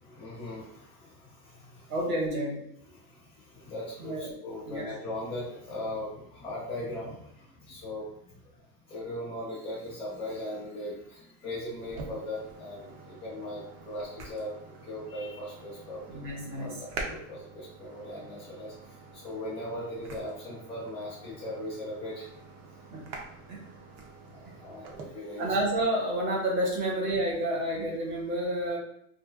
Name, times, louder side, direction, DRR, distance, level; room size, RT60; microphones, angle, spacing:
voice 1, 0.0-1.9 2.9-8.3 8.9-16.2 16.6-22.3 24.2-25.6, left 1 dB, 15° left, -7 dB, 0.6 m, -39 dB
voice 2, 1.9-2.6 4.0-4.3 4.6-4.9 16.1-16.8 22.9-23.0 23.5-23.6 24.4-24.5 25.4-28.8, right 1 dB, 70° right, -2 dB, 1.3 m, -30 dB
sound 1, 11.8-25.0, right 3 dB, 50° right, 0.5 m, -46 dB
2.6 x 2.5 x 2.3 m, 0.73 s
supercardioid pair, 175°, 43 cm